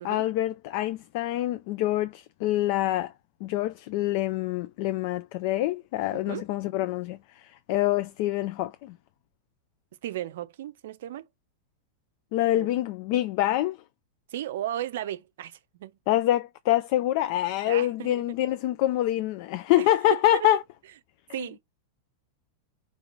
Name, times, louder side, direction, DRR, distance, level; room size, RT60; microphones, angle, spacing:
voice 1, 0.0-3.1 3.4-7.2 7.7-8.9 12.3-13.8 16.1-20.6, left 14 dB, 45° left, 0.3 m, -26 dB
voice 2, 6.1-6.5 10.0-11.3 12.5-12.7 14.3-16.0 17.7-18.4 19.8-20.5 21.3-21.6, right 12 dB, 55° right, 0.5 m, -35 dB
5.0 x 2.9 x 3.7 m
figure-of-eight pair, 90°, 0 cm